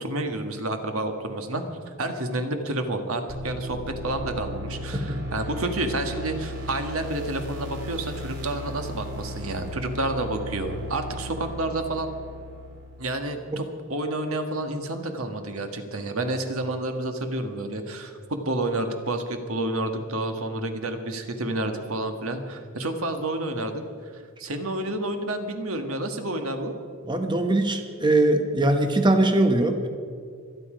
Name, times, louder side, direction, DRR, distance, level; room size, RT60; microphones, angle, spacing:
voice 1, 0.0-12.1 13.0-23.8 24.4-26.7, right 2 dB, 80° right, 6 dB, 1.6 m, -29 dB
sound 1, 3.3-13.1, equal, 55° right, 2.7 m, -36 dB
voice 2, 27.1-29.9, right 1 dB, 20° right, 5 dB, 1.0 m, -21 dB
25.0 x 9.7 x 5.1 m, 2.1 s
head